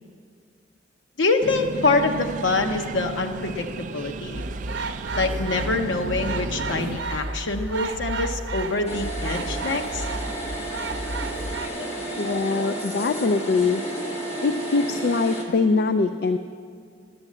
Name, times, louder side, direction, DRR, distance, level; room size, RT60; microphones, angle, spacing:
voice 1, 1.2-4.4 5.1-10.1, left 3 dB, 90° left, 4 dB, 0.7 m, -25 dB
sound 1, 1.4-7.0, right 4 dB, 40° right, 0.3 m, -34 dB
sound 2, 4.3-11.7, right 2 dB, 70° right, 0.7 m, -32 dB
sound 3, 8.9-15.4, right 1 dB, 35° left, 1.5 m, -32 dB
voice 2, 12.2-13.8 14.4-16.4, left 4 dB, 55° left, 9 dB, 0.3 m, -22 dB
11.5 x 7.8 x 7.3 m, 2.2 s
head